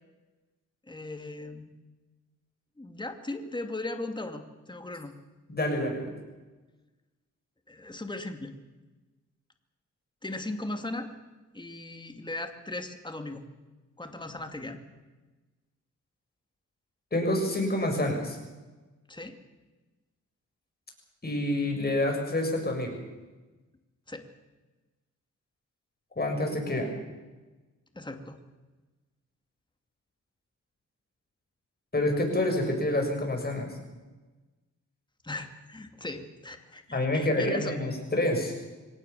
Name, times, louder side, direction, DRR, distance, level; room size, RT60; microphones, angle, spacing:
voice 1, 0.9-1.8 2.8-5.1 7.7-8.6 10.2-11.1 11.5-13.4 14.0-14.8 19.1-19.4 24.1-24.3 27.9-28.4 35.2-37.8, left 2 dB, 15° left, 6 dB, 2.5 m, -38 dB
voice 2, 5.5-6.2 17.1-18.4 21.2-23.0 26.2-27.0 31.9-33.7 36.9-38.6, left 1 dB, 30° left, 2 dB, 7.2 m, -28 dB
23.5 x 18.0 x 7.1 m, 1.2 s
cardioid pair, 75°, 31 cm